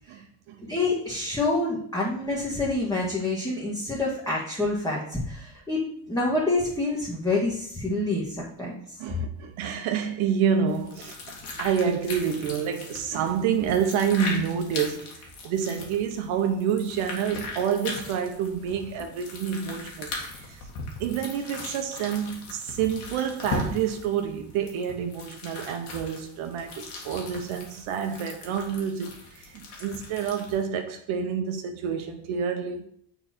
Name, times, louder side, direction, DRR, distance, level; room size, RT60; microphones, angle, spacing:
voice 1, 0.1-0.6 9.0-11.2 11.6-20.6 21.0-32.9, right 7 dB, 75° right, 0.9 m, -28 dB
voice 2, 0.6-8.8, left 2 dB, 5° left, 1.6 m, -27 dB
sound 1, 10.7-30.6, left 3 dB, 90° left, 1.8 m, -39 dB
6.9 x 4.0 x 4.4 m
cardioid pair, 110°, 49 cm